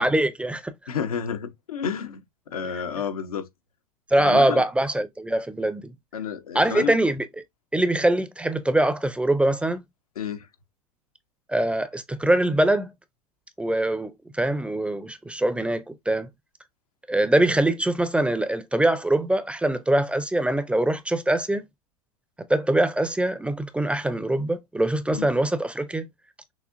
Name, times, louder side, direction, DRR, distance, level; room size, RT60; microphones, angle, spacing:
voice 1, 0.0-0.7 4.1-5.9 6.5-7.3 7.7-9.8 11.5-12.9 13.6-16.3 17.1-21.6 22.5-26.1, right 1 dB, 5° right, 0.5 m, -23 dB
voice 2, 0.9-2.2 2.5-3.5 4.2-4.6 6.1-7.0 10.2-10.5 25.1-25.3, left 7 dB, 80° left, 0.8 m, -30 dB
6.2 x 2.7 x 2.5 m
hypercardioid pair, 90°, 18 cm